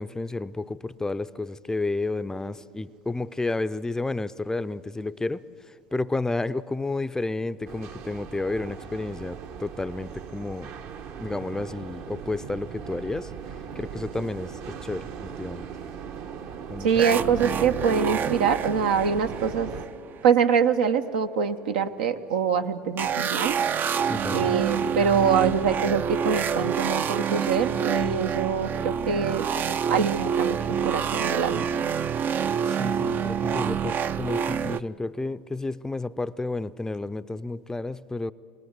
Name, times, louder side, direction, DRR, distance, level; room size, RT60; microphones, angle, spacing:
voice 1, 0.0-10.7 11.2-13.3 13.8-15.7 16.7-17.1 24.1-24.6 32.3-32.4 32.7-38.3, left 2 dB, 10° left, 14 dB, 0.5 m, -31 dB
sound 1, 7.7-19.9, right 7 dB, 55° right, 1.1 m, -39 dB
voice 2, 16.8-19.7 20.2-23.6 24.3-29.5 29.9-31.7, right 6 dB, 80° right, 7 dB, 0.9 m, -24 dB
sound 2, 16.9-20.2 23.0-34.8, right 7 dB, 40° right, 0.5 m, -27 dB
23.0 x 18.5 x 8.1 m, 2.4 s
hypercardioid pair, 75°, 5 cm